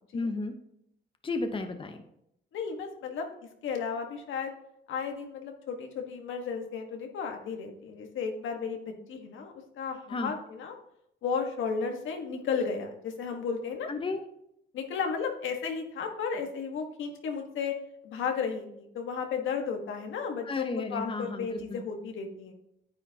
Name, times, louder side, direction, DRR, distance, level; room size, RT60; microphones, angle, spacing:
voice 1, 0.1-0.5 1.2-2.0 10.1-10.3 13.9-14.2 20.4-21.8, left 3 dB, 25° left, 6 dB, 0.9 m, -33 dB
voice 2, 2.5-3.3 3.6-4.5 4.9-10.7 11.2-13.9 14.7-17.8 18.0-22.5, left 6 dB, 80° left, 4 dB, 1.4 m, -34 dB
9.6 x 8.0 x 2.8 m, 0.76 s
cardioid pair, 90°, 20 cm